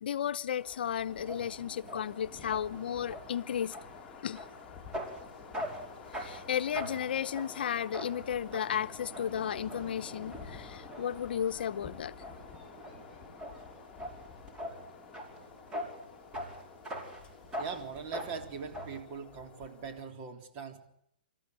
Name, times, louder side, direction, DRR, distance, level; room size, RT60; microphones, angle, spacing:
voice 1, 0.0-3.8 4.2-4.4 6.1-12.1, left 9 dB, 75° left, 0.8 m, -34 dB
sound 1, 0.6-20.0, left 7 dB, 20° left, 2.9 m, -51 dB
sound 2, 1.1-19.0, equal, 15° right, 5.3 m, -44 dB
voice 2, 17.6-20.9, right 6 dB, 35° right, 3.7 m, -41 dB
26.5 x 14.0 x 9.7 m
hypercardioid pair, 145°, 5 cm